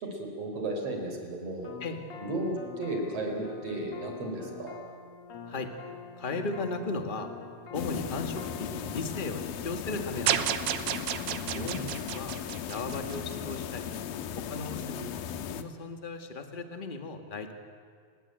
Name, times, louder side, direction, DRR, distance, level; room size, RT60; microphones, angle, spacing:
voice 1, 0.0-1.7 2.2-4.8 11.5-12.0, right 2 dB, 45° right, 3 dB, 5.0 m, -34 dB
sound 1, 1.6-9.0, left 6 dB, 50° left, 2.1 m, -45 dB
voice 2, 6.2-7.3 7.7-10.5 11.5-11.8 12.1-12.3 12.7-13.9 14.3-17.5, left 3 dB, 25° left, 6 dB, 1.0 m, -36 dB
sound 2, 7.7-15.6, left 9 dB, 90° left, 2.9 m, -37 dB
sound 3, 10.3-13.6, right 11 dB, 70° right, 2.0 m, -31 dB
30.0 x 19.5 x 9.0 m, 2.1 s
omnidirectional pair, 4.1 m